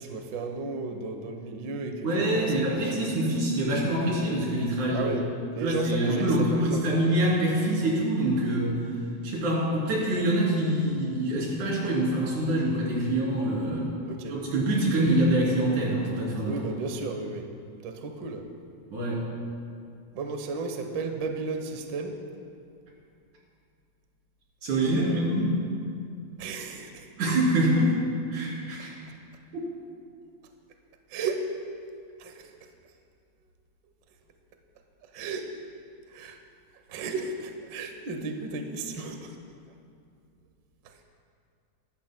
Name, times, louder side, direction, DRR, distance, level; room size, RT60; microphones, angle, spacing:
voice 1, 0.0-3.1 4.9-5.3 5.5-7.0 14.1-14.4 16.4-17.5 17.8-18.4 20.1-22.2 24.8-25.4 26.4-27.1 31.1-31.5 32.2-32.6 35.1-35.5 36.1-36.4 36.9-39.4 40.8-41.0, right 3 dB, 65° right, 5 dB, 1.2 m, -34 dB
voice 2, 1.5-5.1 5.6-8.9 9.2-13.9 14.3-16.6 18.9-19.2 24.6-25.6 27.2-28.0 28.3-28.9 29.5-29.7, right 1 dB, 85° right, -5 dB, 4.5 m, -25 dB
24.0 x 12.5 x 2.2 m, 2.4 s
omnidirectional pair, 3.4 m